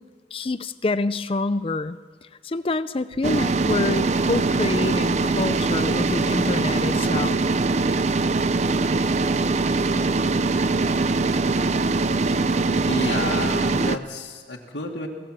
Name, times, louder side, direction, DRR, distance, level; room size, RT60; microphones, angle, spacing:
voice 1, 0.3-2.0 2.4-7.4, left 3 dB, 30° left, 14 dB, 0.5 m, -27 dB
sound 1, 3.2-14.0, right 3 dB, 40° right, 0.6 m, -22 dB
voice 2, 12.8-15.1, left 2 dB, 90° left, -1 dB, 2.1 m, -30 dB
23.0 x 17.0 x 7.5 m, 1.5 s
head